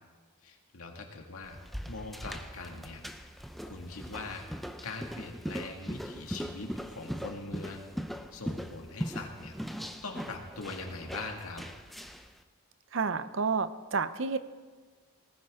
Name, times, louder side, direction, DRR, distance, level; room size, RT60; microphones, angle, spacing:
voice 1, 0.4-1.6 1.9-3.0 3.6-4.5 4.8-11.7, left 3 dB, 85° left, 2 dB, 2.0 m, -42 dB
sound 1, 1.4-12.3, equal, ahead, 0.5 m, -40 dB
voice 2, 12.9-14.4, right 4 dB, 60° right, 12 dB, 0.6 m, -30 dB
19.0 x 14.0 x 3.6 m, 1.4 s
head